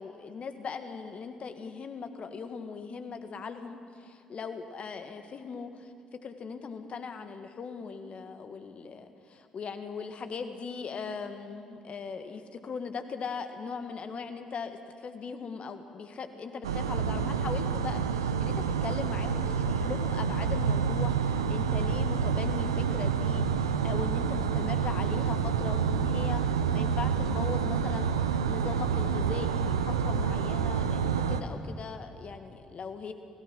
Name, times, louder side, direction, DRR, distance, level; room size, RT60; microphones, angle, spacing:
voice 1, 0.0-5.9 6.2-18.5 18.8-33.1, left 5 dB, 50° left, 8 dB, 1.8 m, -39 dB
Outdoors cabin substation, 16.6-31.4, right 6 dB, 90° right, 0.7 m, -28 dB
27.0 x 17.0 x 6.3 m, 2.4 s
hypercardioid pair, 50°, 3 cm